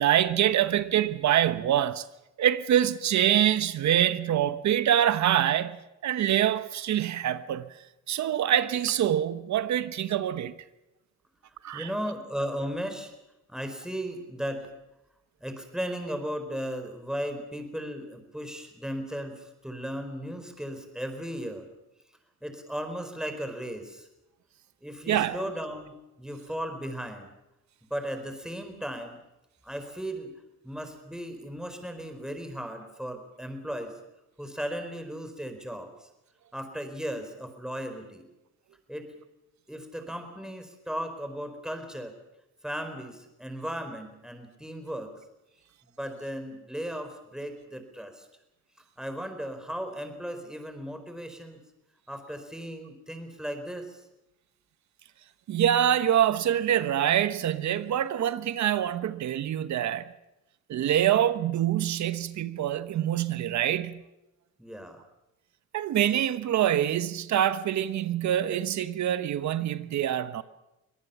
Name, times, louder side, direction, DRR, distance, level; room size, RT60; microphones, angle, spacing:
voice 1, 0.0-2.0 2.4-7.7 8.1-10.5 11.6-11.9 25.1-25.4 55.5-60.1 60.7-64.0 65.7-70.4, right 11 dB, 65° right, 1.1 m, -25 dB
voice 2, 11.7-13.1 13.5-14.7 15.4-21.7 22.4-24.1 24.8-27.3 27.9-29.2 29.6-30.3 30.6-34.0 34.4-36.1 36.5-38.2 38.9-39.1 39.7-42.2 42.6-45.1 45.8-48.3 49.0-51.6 52.1-54.1 64.6-65.0, equal, ahead, 4.4 m, -36 dB
24.0 x 18.5 x 7.2 m
cardioid pair, 90°, 30 cm